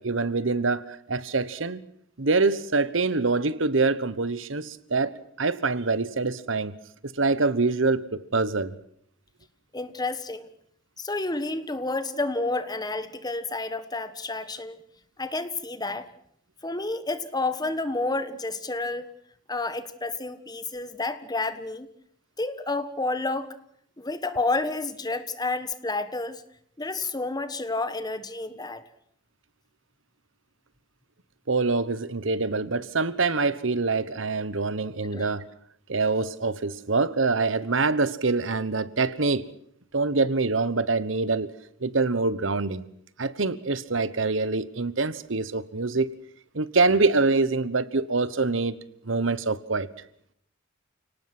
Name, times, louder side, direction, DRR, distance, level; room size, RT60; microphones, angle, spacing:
voice 1, 0.0-1.8 2.2-6.7 7.2-8.7 31.5-35.5 35.9-39.5 39.9-41.5 41.8-42.8 43.2-46.1 46.5-48.8 49.0-49.9, right 3 dB, 75° right, 16 dB, 1.2 m, -25 dB
voice 2, 9.7-10.5 11.0-14.8 15.2-16.1 16.6-19.1 19.5-21.9 22.4-23.5 24.0-26.4 26.8-28.8 35.1-35.3, left 2 dB, 20° left, 12 dB, 1.5 m, -30 dB
29.5 x 18.5 x 6.1 m, 0.67 s
head